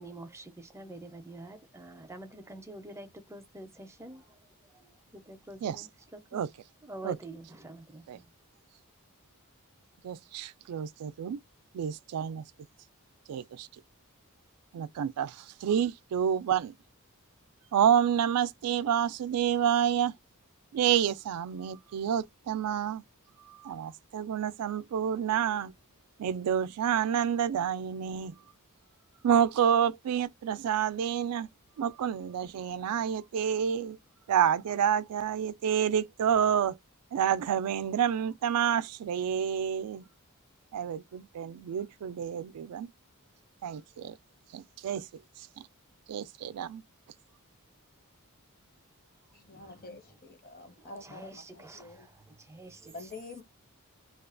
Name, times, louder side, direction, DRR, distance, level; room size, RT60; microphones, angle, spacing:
voice 1, 0.0-4.2 4.7-6.4 6.8-8.3 49.5-49.8 50.8-53.1, right 2 dB, 10° right, 0.5 m, -47 dB
voice 2, 10.0-11.4 11.7-12.4 13.3-13.7 14.7-16.7 17.7-20.1 20.7-23.0 23.5-25.7 26.2-28.3 29.2-31.5 31.8-34.0 34.3-36.8 37.1-40.0 40.7-42.9 43.6-44.2 44.5-45.1 46.1-46.8, right 8 dB, 80° right, 0.3 m, -29 dB
voice 3, 49.3-52.1 52.9-53.4, left 3 dB, 45° left, 0.8 m, -47 dB
2.4 x 2.2 x 2.4 m
head